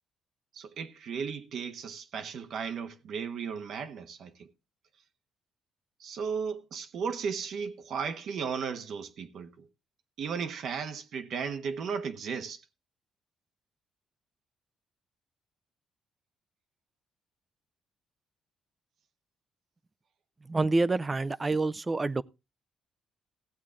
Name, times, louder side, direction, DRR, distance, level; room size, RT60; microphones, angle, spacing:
voice 1, 0.5-4.5 6.0-9.7 10.2-12.6, right 6 dB, 70° right, 1.2 m, -35 dB
voice 2, 20.5-22.2, right 3 dB, 25° right, 0.6 m, -27 dB
15.5 x 8.4 x 3.8 m
cardioid pair, 90°, 0 cm